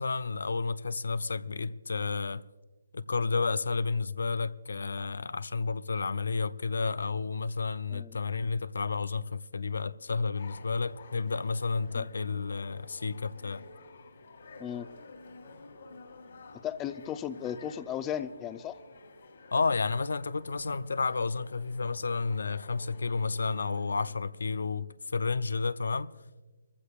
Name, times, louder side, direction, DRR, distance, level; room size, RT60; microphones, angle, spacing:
voice 1, 0.0-2.4 2.9-13.6 19.5-26.1, left 4 dB, 80° left, 0.5 m, -31 dB
sound 1, 10.3-24.1, left 2 dB, 65° left, 3.1 m, -51 dB
voice 2, 16.6-18.8, left 9 dB, 15° left, 0.5 m, -36 dB
22.0 x 15.0 x 2.4 m
hypercardioid pair, 155°, 0 cm